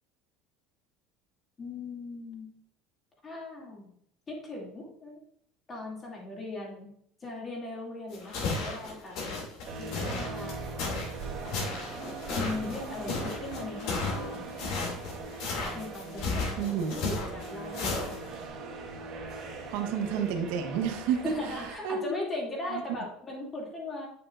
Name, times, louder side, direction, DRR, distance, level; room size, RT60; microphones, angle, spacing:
voice 1, 1.6-2.5 3.2-3.9 4.3-5.2 5.7-6.9 7.2-9.2 9.8-10.6 12.3-14.5 15.7-16.7 17.1-18.3 21.2-24.1, left 2 dB, 25° left, -2 dB, 2.5 m, -38 dB
sound 1, 8.1-18.4, left 3 dB, 60° left, 2.5 m, -34 dB
sound 2, 9.6-21.7, right 3 dB, 40° right, 2.2 m, -41 dB
voice 2, 16.6-16.9 19.7-22.0 22.7-22.8, right 7 dB, 75° right, 4 dB, 1.2 m, -30 dB
8.4 x 6.9 x 2.5 m, 0.69 s
cardioid pair, 145°, 0 cm